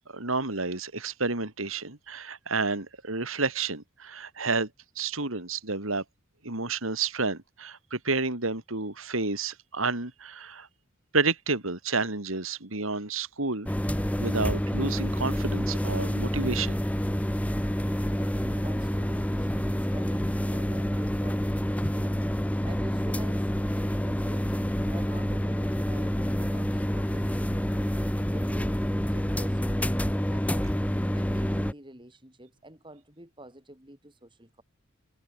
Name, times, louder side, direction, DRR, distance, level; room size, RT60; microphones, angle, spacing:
voice 1, 0.1-4.7 5.0-6.0 6.4-10.7 11.1-13.7 14.2-16.8, right 3 dB, 85° right, 3.7 m, -30 dB
sound 1, 13.7-31.7, equal, 5° left, 1.8 m, -28 dB
voice 2, 18.1-22.3 22.6-23.5 23.8-24.6 24.9-34.6, right 1 dB, 25° right, 5.2 m, -48 dB
head